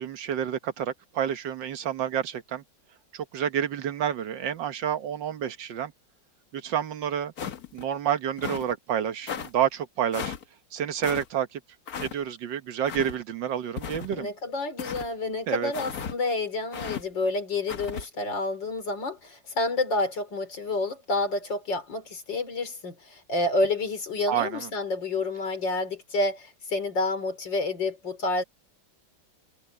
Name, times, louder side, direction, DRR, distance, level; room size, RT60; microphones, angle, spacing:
voice 1, 0.0-2.6 3.1-5.9 6.5-7.3 7.7-10.4 10.7-11.6 12.0-14.3 15.5-15.7 24.3-24.7, right 9 dB, 85° right, 1.8 m, -29 dB
sound 1, 7.4-7.9 8.4-8.7 9.3-9.5 10.1-10.4 11.0-11.3 11.9-12.2 12.9-13.2 13.8-14.3 14.8-15.1 15.7-16.2 16.7-17.0 17.7-18.1, left 7 dB, 60° left, 1.6 m, -35 dB
voice 2, 14.1-28.4, left 2 dB, 85° left, 4.3 m, -29 dB
omnidirectional pair, 1.9 m